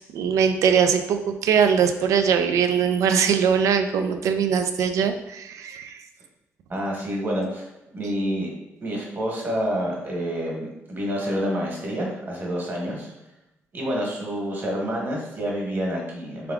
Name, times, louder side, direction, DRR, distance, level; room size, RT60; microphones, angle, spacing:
voice 1, 0.1-6.0, right 7 dB, 85° right, 7 dB, 0.4 m, -21 dB
voice 2, 6.7-7.7 7.9-8.5 8.8-13.1 13.7-16.5, equal, 40° right, -2 dB, 1.3 m, -28 dB
3.6 x 3.4 x 3.5 m, 0.93 s
cardioid pair, 115°, 5 cm